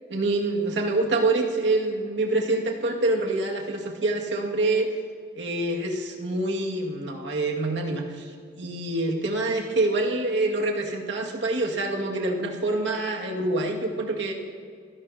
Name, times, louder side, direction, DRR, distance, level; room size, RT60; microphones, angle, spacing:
voice 1, 0.1-4.9 5.4-14.3, right 2 dB, 65° right, 0 dB, 2.0 m, -26 dB
29.0 x 17.0 x 2.8 m, 2.2 s
head